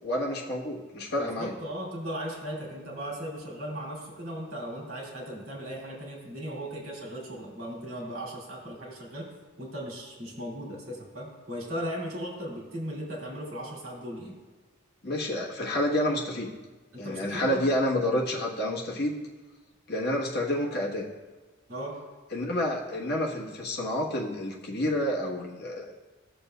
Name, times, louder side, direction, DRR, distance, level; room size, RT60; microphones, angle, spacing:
voice 1, 0.0-1.5 15.0-16.5 17.0-19.2 19.9-21.1 22.3-25.9, left 1 dB, 50° left, -3 dB, 1.2 m, -29 dB
voice 2, 1.2-9.3 9.6-14.3 16.9-17.6 21.7-22.0, equal, 75° right, -3 dB, 2.4 m, -37 dB
16.0 x 6.9 x 2.2 m, 1.3 s
head